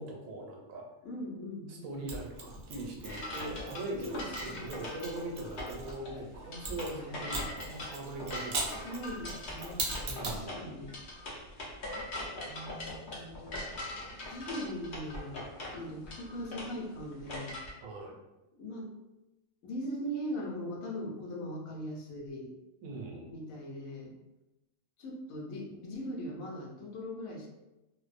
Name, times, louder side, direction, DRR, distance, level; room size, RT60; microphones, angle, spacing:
voice 1, 0.0-0.8 1.7-9.0 10.1-10.7 17.8-18.2 22.8-23.3, right 2 dB, 80° right, 0 dB, 1.0 m, -41 dB
voice 2, 1.0-2.1 4.0-4.7 6.9-7.1 8.7-9.8 10.2-11.0 12.4-13.7 14.2-15.4 15.7-17.6 18.6-18.9 19.6-22.5 23.3-24.1 25.0-27.5, equal, 80° left, -1 dB, 1.0 m, -40 dB
Mechanisms, 2.1-5.9 6.6-10.5, right 2 dB, 60° right, 0.6 m, -40 dB
sound 1, 3.0-17.7, left 1 dB, 50° left, 0.7 m, -41 dB
2.5 x 2.0 x 2.4 m, 1.0 s
omnidirectional pair, 1.4 m